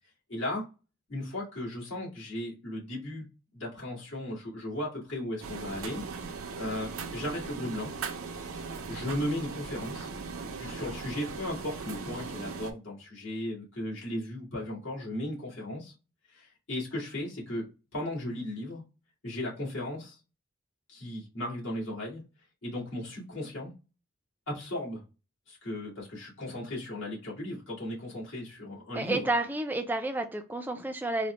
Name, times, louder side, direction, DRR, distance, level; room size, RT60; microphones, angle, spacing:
voice 1, 0.3-0.7 1.1-3.3 3.5-6.0 6.6-7.9 8.5-10.1 10.4-15.9 16.3-17.7 17.9-18.8 19.2-20.2 20.9-22.2 22.6-23.7 24.5-25.0 25.5-29.3, left 1 dB, 65° left, 1.8 m, -36 dB
sound 1, 5.4-12.7, right 4 dB, 90° right, 0.5 m, -39 dB
voice 2, 28.9-31.3, right 2 dB, 10° right, 0.3 m, -30 dB
4.0 x 2.1 x 3.2 m
head